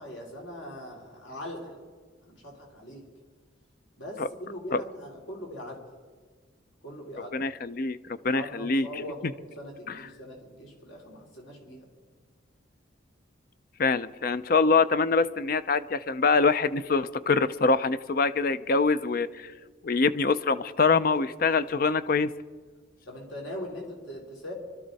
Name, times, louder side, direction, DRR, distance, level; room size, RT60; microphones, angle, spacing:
voice 1, 0.0-1.8 2.2-3.0 3.9-5.8 6.8-7.4 8.3-11.9 23.1-24.5, equal, 70° left, -1 dB, 3.9 m, -41 dB
voice 2, 7.3-8.0 8.2-9.3 9.9-10.0 13.8-19.5 19.8-22.3, left 4 dB, 45° left, 14 dB, 0.5 m, -24 dB
24.5 x 12.5 x 4.1 m, 1.5 s
head